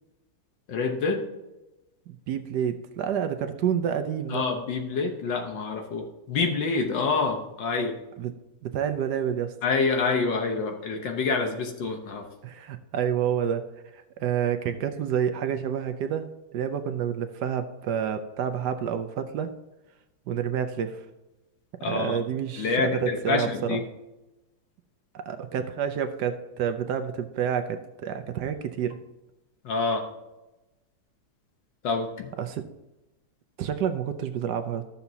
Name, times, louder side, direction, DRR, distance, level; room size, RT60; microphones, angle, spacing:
voice 1, 0.7-1.2 4.3-8.0 9.6-12.2 21.8-22.2 22.6-23.8 29.6-30.1 31.8-32.3, left 4 dB, 70° left, 3 dB, 1.7 m, -27 dB
voice 2, 2.1-4.4 8.2-8.3 8.6-9.5 12.4-13.6 13.9-19.5 20.3-21.0 21.8-23.8 25.1-29.0 32.4-32.6 33.6-34.8, right 8 dB, 70° right, 8 dB, 1.1 m, -29 dB
13.5 x 6.9 x 2.8 m, 1.0 s
omnidirectional pair, 2.1 m